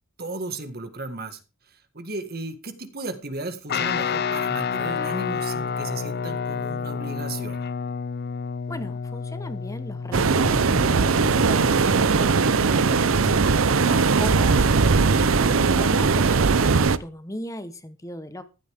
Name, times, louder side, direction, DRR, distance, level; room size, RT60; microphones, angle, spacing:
voice 1, 0.2-1.4 1.7-7.7, right 2 dB, 50° right, 9 dB, 1.9 m, -35 dB
Guitar, 3.7-13.5, left 6 dB, 50° left, 0.5 m, -30 dB
voice 2, 8.7-13.1 13.5-18.4, left 1 dB, 15° left, 10 dB, 1.1 m, -37 dB
sound 1, 10.1-17.0, right 4 dB, 75° right, 0.7 m, -19 dB
15.0 x 12.0 x 3.6 m, 0.31 s
head